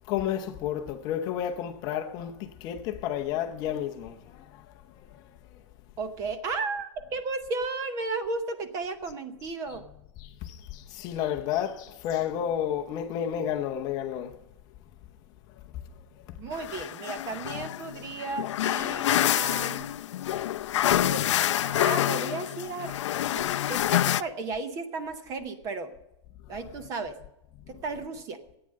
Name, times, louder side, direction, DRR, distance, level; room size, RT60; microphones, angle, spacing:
voice 1, 0.1-4.8 5.1-5.2 10.2-14.3, left 10 dB, 25° left, 0.7 m, -31 dB
voice 2, 6.0-9.8 16.4-19.9 20.9-21.2 21.6-22.9 23.3-25.9 26.5-27.1 27.7-28.4, right 3 dB, 20° right, 0.8 m, -34 dB
sound 1, 16.5-24.2, left 12 dB, 85° left, 0.4 m, -27 dB
13.0 x 8.8 x 6.4 m
supercardioid pair, 170°, 15 cm